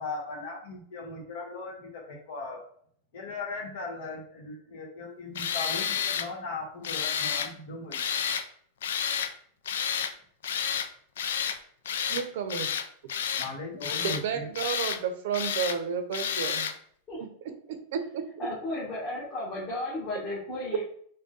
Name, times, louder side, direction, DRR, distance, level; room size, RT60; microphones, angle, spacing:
voice 1, 0.0-2.6 3.1-8.0 13.4-14.5, left 3 dB, 65° left, 0 dB, 1.2 m, -38 dB
Tools, 5.3-6.3 6.8-7.5 7.9-8.4 8.8-9.3 9.6-10.1 10.4-10.9 11.2-11.6 11.9-12.2 12.5-13.5 13.8-14.2 14.5-15.0 15.3-15.8 16.1-16.7, left 8 dB, 90° left, 0.3 m, -30 dB
voice 2, 12.1-12.7 14.0-16.7 17.2-17.3 17.9-18.3, right 7 dB, 70° right, 7 dB, 0.6 m, -31 dB
voice 3, 18.4-20.8, left 1 dB, 25° left, -8 dB, 1.3 m, -34 dB
3.6 x 2.2 x 3.9 m, 0.62 s
supercardioid pair, 145°, 0 cm